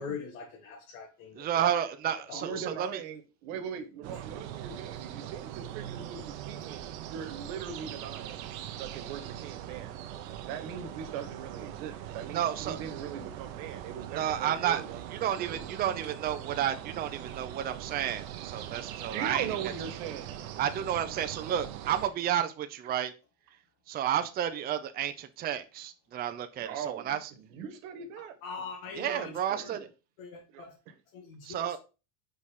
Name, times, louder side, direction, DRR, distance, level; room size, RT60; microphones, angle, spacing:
voice 1, 0.0-2.7 28.4-29.3 29.6-29.8 30.2-30.8 31.1-31.8, left 5 dB, 80° left, 1.7 m, -42 dB
voice 2, 1.4-3.0 12.3-12.8 14.1-14.8 15.1-19.5 20.6-23.1 23.9-27.3 29.0-29.9 31.4-31.8, right 10 dB, 25° right, 0.5 m, -31 dB
voice 3, 2.3-6.8 7.1-8.4 8.8-10.0 10.5-15.0 15.3-15.6 19.0-20.4 26.6-28.3 29.1-29.9 30.5-30.6, right 8 dB, 70° right, 1.5 m, -40 dB
sound 1, 4.0-22.1, right 11 dB, 90° right, 1.0 m, -41 dB
5.4 x 4.1 x 4.9 m
supercardioid pair, 135°, 41 cm